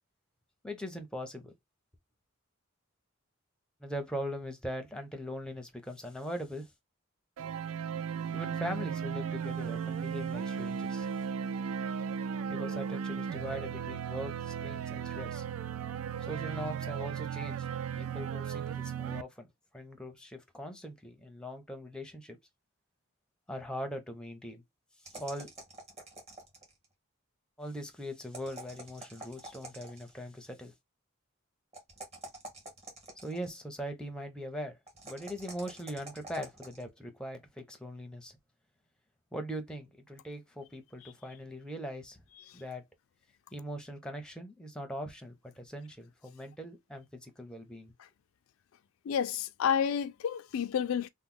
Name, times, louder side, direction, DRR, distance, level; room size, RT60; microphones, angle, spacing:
voice 1, 0.6-1.5 3.8-6.7 8.3-11.1 12.5-15.4 16.2-17.7 17.9-19.5 19.7-22.4 23.5-24.6 25.2-25.5 27.6-30.7 33.2-34.8 35.0-38.4 39.3-42.2 42.5-42.8 43.5-47.9, equal, 5° left, 0.6 m, -41 dB
sound 1, 7.4-19.2, right 7 dB, 80° right, 0.3 m, -36 dB
sound 2, 25.0-26.8 28.2-30.2 31.7-33.6 34.9-36.8, right 2 dB, 30° right, 1.2 m, -47 dB
voice 2, 49.1-51.1, left 8 dB, 80° left, 0.3 m, -30 dB
3.0 x 2.1 x 3.7 m
head